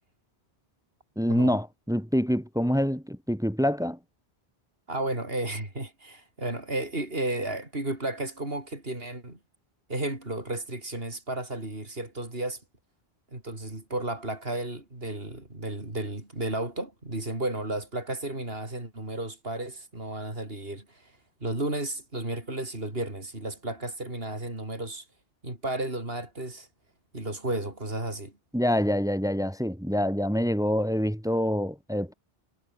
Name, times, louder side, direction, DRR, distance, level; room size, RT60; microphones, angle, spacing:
voice 1, 1.2-4.0 28.5-32.1, equal, 5° right, 2.6 m, -26 dB
voice 2, 4.9-9.4 9.9-12.6 13.3-25.1 25.4-26.7 27.1-28.3, right 2 dB, 65° right, 5.8 m, -33 dB
omnidirectional pair, 1.1 m